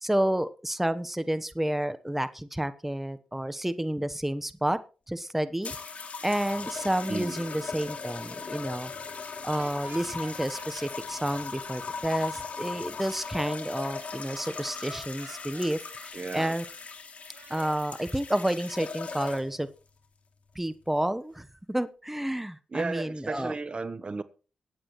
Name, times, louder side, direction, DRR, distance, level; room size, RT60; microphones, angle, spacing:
voice 1, 0.0-4.8 5.1-5.8 6.2-8.9 9.4-16.6 17.5-19.7 20.5-23.5, right 1 dB, 10° right, 1.0 m, -30 dB
sound 1, 5.6-19.6 20.5-20.9, left 5 dB, 60° left, 2.7 m, -38 dB
sound 2, 9.5-10.7 14.9-15.7 17.3-17.7, right 5 dB, 75° right, 3.6 m, -48 dB
voice 2, 16.1-16.5 22.7-24.2, right 3 dB, 40° right, 1.0 m, -33 dB
23.0 x 8.7 x 3.1 m
supercardioid pair, 50°, 3 cm